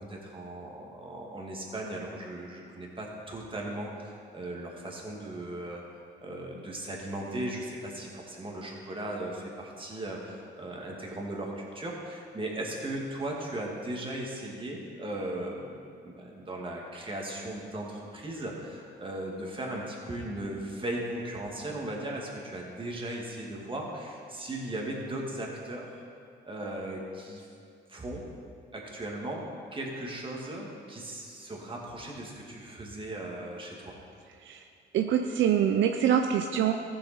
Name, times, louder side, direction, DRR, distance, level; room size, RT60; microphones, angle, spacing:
voice 1, 0.0-5.8 6.2-15.8 16.0-25.9 26.4-27.5 27.9-28.3 28.7-34.0, right 1 dB, 25° right, -1 dB, 2.1 m, -37 dB
voice 2, 34.9-36.7, right 9 dB, 70° right, 5 dB, 0.6 m, -25 dB
15.0 x 6.8 x 4.3 m, 2.4 s
cardioid pair, 90°, 20 cm